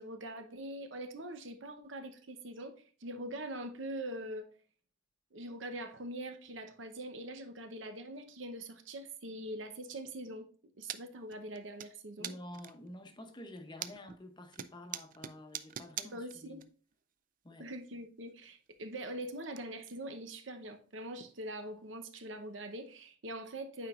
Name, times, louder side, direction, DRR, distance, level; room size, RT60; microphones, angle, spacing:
voice 1, 0.0-4.5 5.3-10.5 10.8-12.4 16.1-16.6 17.6-23.9, right 1 dB, 80° right, 0.8 m, -43 dB
sound 1, 10.9-11.0 11.3-11.9 12.2-12.9 13.4-14.2 14.5-16.7 16.9-17.0 18.3-18.4 18.7-19.6 19.8-19.9 20.4-20.5 20.9-21.0 21.6-21.7 22.9-23.0, right 10 dB, 45° right, 0.4 m, -43 dB
voice 2, 12.2-16.6 17.4-17.7, left 1 dB, 25° left, 0.8 m, -49 dB
9.0 x 4.5 x 2.4 m
head